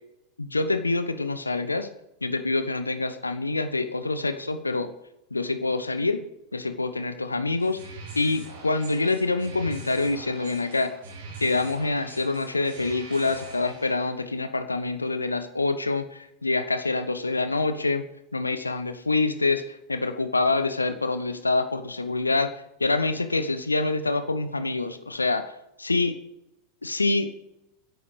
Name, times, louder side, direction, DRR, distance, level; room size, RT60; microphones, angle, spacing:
voice 1, 0.4-1.9 2.2-4.9 5.3-6.2 6.5-7.8 8.1-10.9 11.4-22.5 22.8-25.5 25.8-26.2 26.8-27.3, left 3 dB, 80° left, 10 dB, 1.0 m, -26 dB
sound 1, 7.6-14.1, right 2 dB, 60° right, 3.6 m, -43 dB
23.0 x 11.0 x 3.4 m, 0.89 s
figure-of-eight pair, 90°, 0 cm